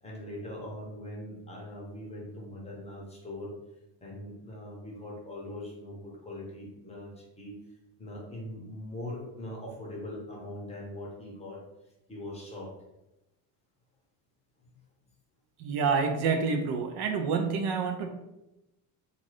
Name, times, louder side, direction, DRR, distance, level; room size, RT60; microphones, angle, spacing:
voice 1, 0.0-3.5 4.0-7.6 8.0-11.6 12.1-12.7, left 1 dB, 15° left, -3 dB, 0.7 m, -41 dB
voice 2, 15.6-18.1, right 5 dB, 60° right, 5 dB, 0.5 m, -28 dB
2.6 x 2.4 x 3.1 m, 0.93 s
cardioid pair, 135°, 43 cm